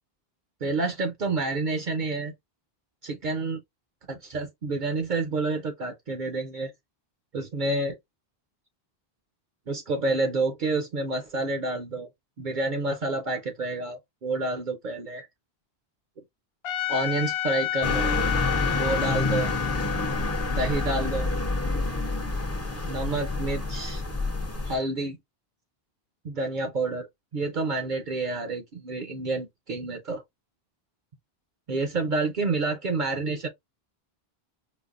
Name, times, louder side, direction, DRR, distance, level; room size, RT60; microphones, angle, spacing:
voice 1, 0.6-2.3 3.0-3.6 4.1-6.7 7.3-8.0 9.7-12.1 12.4-15.3 16.9-18.1 18.7-19.5 20.5-21.3 22.8-24.0 24.7-25.2 26.2-27.1 27.3-30.2 31.7-33.5, right 3 dB, 55° right, 0.7 m, -29 dB
Trumpet, 16.6-21.8, left 14 dB, 85° left, 0.8 m, -31 dB
sound 1, 17.8-24.8, left 2 dB, 20° left, 0.5 m, -28 dB
5.1 x 2.0 x 2.4 m
omnidirectional pair, 1.0 m